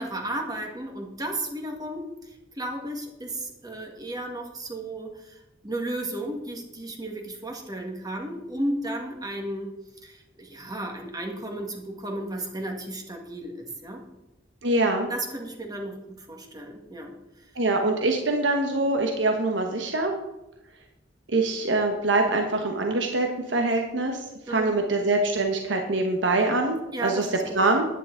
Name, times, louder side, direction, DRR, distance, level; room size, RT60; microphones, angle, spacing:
voice 1, 0.0-9.7 10.0-14.0 15.1-17.1 17.4-17.5 24.5-24.7 26.9-27.6, right 1 dB, 20° right, 2 dB, 1.8 m, -34 dB
voice 2, 14.6-15.1 17.6-20.1 21.3-24.2 24.5-27.3 27.5-27.9, right 2 dB, 85° right, 3 dB, 1.2 m, -24 dB
11.0 x 9.8 x 3.9 m, 0.94 s
head